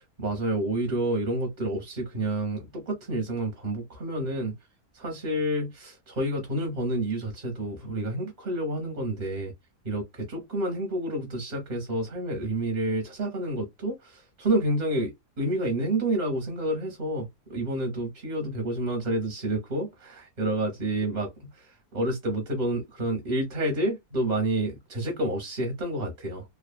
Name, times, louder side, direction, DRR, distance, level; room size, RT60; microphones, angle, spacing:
voice 1, 0.0-4.5 4.9-9.5 9.8-21.3 21.6-21.7 21.9-26.4, right 1 dB, 35° right, 1.0 m, -29 dB
2.8 x 2.4 x 2.2 m
omnidirectional pair, 1.6 m